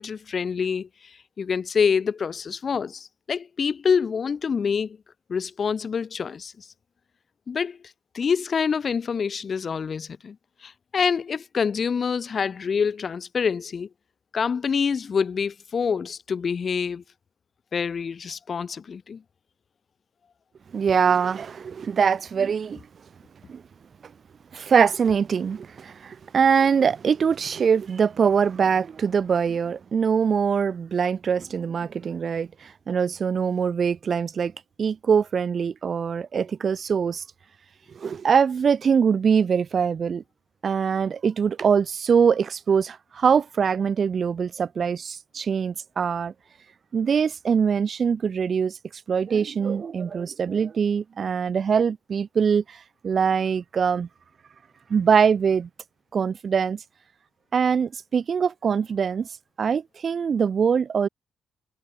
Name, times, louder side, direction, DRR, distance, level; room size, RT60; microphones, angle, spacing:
voice 1, 0.0-5.0 5.3-6.7 7.5-7.8 8.1-10.4 10.6-13.9 14.3-17.0 17.7-19.2, left 6 dB, 45° left, 2.4 m, -26 dB
voice 2, 20.7-22.8 23.5-23.6 24.5-34.5 34.8-37.2 37.9-40.2 40.6-46.3 46.9-48.8 49.1-54.1 54.9-55.7 56.1-56.8 57.5-59.3 59.6-61.1, right 6 dB, 45° right, 1.4 m, -23 dB
cardioid pair, 90°, 0 cm